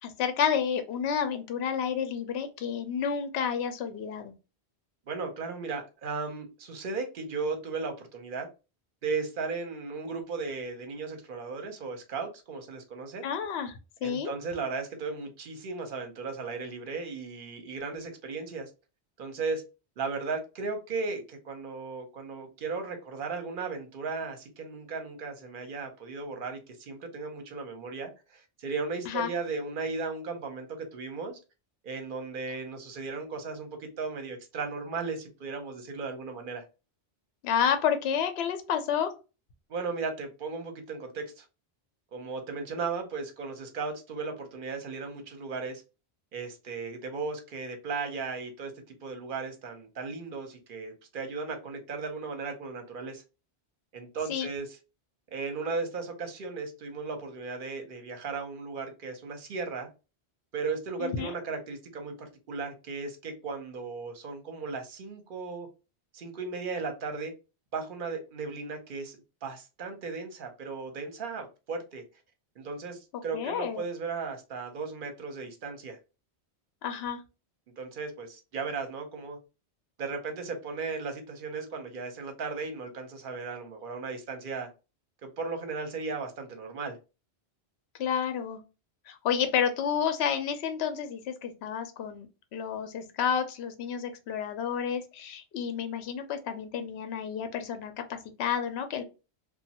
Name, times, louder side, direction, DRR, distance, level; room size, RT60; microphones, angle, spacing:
voice 1, 0.0-4.3 13.2-14.3 29.1-29.3 37.4-39.1 54.3-54.5 61.0-61.3 73.1-73.8 76.8-77.2 88.0-88.6 89.1-92.3 92.5-99.0, left 8 dB, 75° left, 0.8 m, -30 dB
voice 2, 5.1-8.5 9.0-13.2 14.0-18.7 19.2-19.6 20.0-31.4 31.8-36.6 39.7-41.4 42.1-45.8 46.3-48.7 49.0-53.2 53.9-54.7 55.3-59.9 60.5-65.7 66.1-67.3 67.7-72.0 72.6-76.0 77.8-79.4 80.0-84.7 85.2-87.0, right 4 dB, 55° right, 0.8 m, -36 dB
3.0 x 2.2 x 2.8 m
omnidirectional pair, 1.1 m